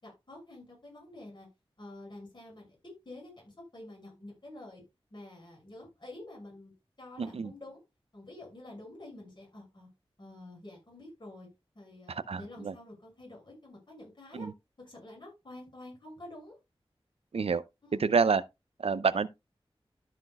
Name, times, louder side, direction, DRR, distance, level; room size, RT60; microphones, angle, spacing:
voice 1, 0.0-1.5 1.8-4.8 5.1-6.7 7.0-7.8 8.1-9.9 10.2-11.5 11.7-14.5 14.8-16.6 17.8-18.0, left 1 dB, 50° left, 6.2 m, -48 dB
voice 2, 7.2-7.5 12.1-12.7 14.3-14.5 17.3-17.6 18.0-18.4 18.8-19.3, right 5 dB, 85° right, 0.6 m, -28 dB
13.0 x 5.9 x 2.4 m
wide cardioid pair, 80°, 10 cm